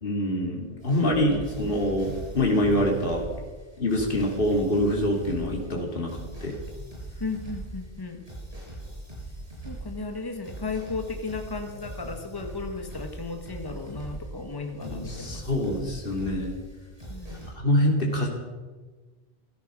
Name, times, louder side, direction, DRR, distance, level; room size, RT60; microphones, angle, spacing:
voice 1, 0.0-3.2 3.8-6.5 14.8-16.5 17.5-18.3, left 1 dB, 60° left, 0 dB, 2.8 m, -25 dB
sound 1, 0.8-17.5, right 1 dB, 35° right, 6.3 m, -41 dB
voice 2, 7.2-8.2 9.6-15.5 17.1-17.4, left 3 dB, 20° left, 5 dB, 1.5 m, -35 dB
16.0 x 13.5 x 6.3 m, 1.3 s
omnidirectional pair, 1.0 m